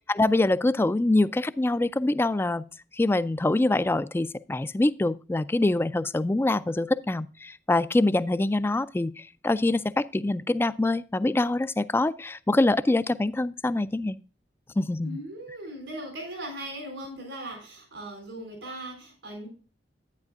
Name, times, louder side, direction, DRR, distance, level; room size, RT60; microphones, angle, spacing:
voice 1, 0.1-2.6 2.9-14.2 14.8-15.2, left 2 dB, 15° left, 15 dB, 0.3 m, -25 dB
voice 2, 15.0-19.5, right 1 dB, 85° right, 3 dB, 4.0 m, -39 dB
10.5 x 9.5 x 2.4 m, 0.36 s
head